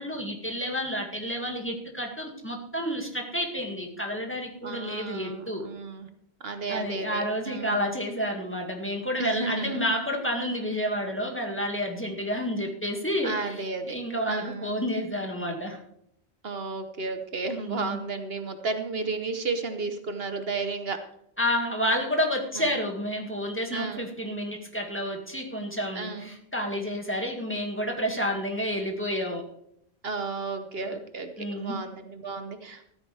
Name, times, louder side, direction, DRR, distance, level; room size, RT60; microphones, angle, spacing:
voice 1, 0.0-5.6 6.7-15.8 17.6-18.0 21.4-29.4 30.8-31.0 31.4-31.8, equal, 10° left, 1 dB, 2.1 m, -30 dB
voice 2, 4.6-6.1 6.4-7.9 9.2-9.8 13.2-14.0 14.3-14.8 16.4-21.0 22.6-22.7 23.7-24.1 25.9-26.3 30.0-32.9, right 4 dB, 65° right, 7 dB, 1.3 m, -33 dB
14.0 x 13.0 x 3.4 m, 0.72 s
omnidirectional pair, 1.1 m